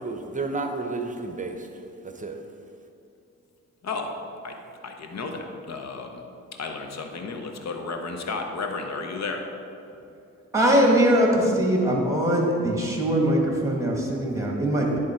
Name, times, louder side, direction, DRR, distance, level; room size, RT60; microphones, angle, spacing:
voice 1, 0.0-2.5, right 3 dB, 25° right, 5 dB, 0.8 m, -32 dB
voice 2, 4.8-6.2 6.6-9.4, left 4 dB, 60° left, 4 dB, 0.9 m, -33 dB
voice 3, 10.5-15.0, equal, 10° right, -1 dB, 1.7 m, -21 dB
10.5 x 3.7 x 4.4 m, 2.6 s
cardioid pair, 60°, 31 cm